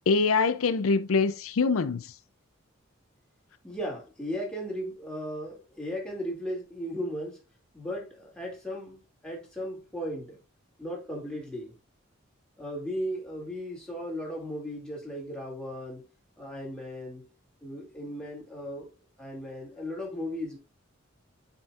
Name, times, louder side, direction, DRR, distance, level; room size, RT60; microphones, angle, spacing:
voice 1, 0.1-2.1, left 4 dB, 80° left, 0.5 m, -24 dB
voice 2, 3.6-7.4 7.7-10.4 10.8-11.7 12.6-16.0 16.4-17.3 17.6-18.9 19.2-20.6, equal, 5° left, 2.4 m, -36 dB
7.9 x 5.1 x 2.4 m
head